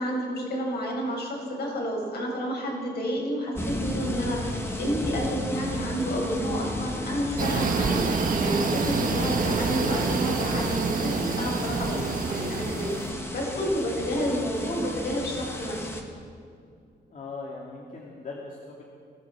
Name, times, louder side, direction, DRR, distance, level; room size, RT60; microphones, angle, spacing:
voice 1, 0.0-8.0 8.3-12.0 12.3-15.9, equal, 65° left, -2 dB, 7.0 m, -30 dB
sound 1, 3.6-16.0, left 1 dB, 15° left, 2.0 m, -34 dB
sound 2, 7.4-13.1, right 4 dB, 45° right, 1.7 m, -27 dB
voice 2, 17.1-18.8, left 3 dB, 45° left, -2 dB, 2.6 m, -40 dB
23.0 x 16.5 x 7.6 m, 2.4 s
wide cardioid pair, 180°, 18 cm